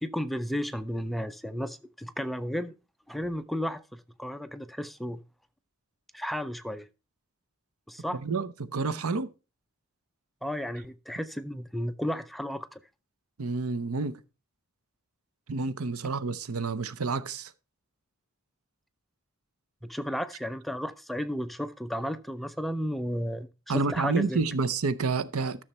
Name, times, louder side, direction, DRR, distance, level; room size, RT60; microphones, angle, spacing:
voice 1, 0.0-2.7 3.1-5.2 6.1-6.9 7.9-8.2 10.4-12.8 19.8-23.5 23.7-24.4, equal, ahead, 0.5 m, -33 dB
voice 2, 8.1-9.3 13.4-14.2 15.5-17.5 23.7-25.6, right 4 dB, 90° right, 0.8 m, -29 dB
13.0 x 6.5 x 4.2 m
head